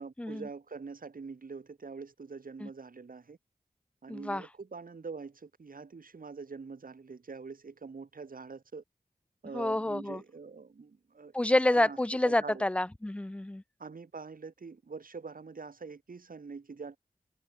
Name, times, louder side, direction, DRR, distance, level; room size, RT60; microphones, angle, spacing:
voice 1, 0.0-3.4 4.0-8.8 9.4-11.3 11.7-12.7 13.8-17.0, right 4 dB, 80° right, 1.7 m, -44 dB
voice 2, 4.1-4.4 9.5-10.2 11.3-13.6, left 1 dB, 10° left, 0.3 m, -28 dB
wide cardioid pair, 60°, 14 cm